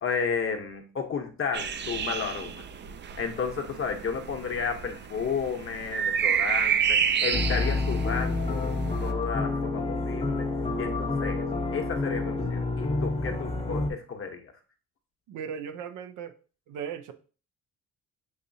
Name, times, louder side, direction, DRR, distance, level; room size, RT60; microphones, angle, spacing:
voice 1, 0.0-2.6 3.2-10.5 10.8-11.5 11.7-14.5, left 6 dB, 45° left, 0.9 m, -32 dB
sound 1, 1.5-9.1, right 8 dB, 40° right, 0.4 m, -30 dB
sound 2, 7.3-13.9, left 3 dB, 20° left, 0.7 m, -28 dB
voice 2, 15.3-16.4 16.7-17.1, right 7 dB, 85° right, 0.6 m, -37 dB
6.5 x 2.7 x 2.7 m
cardioid pair, 90°, 30 cm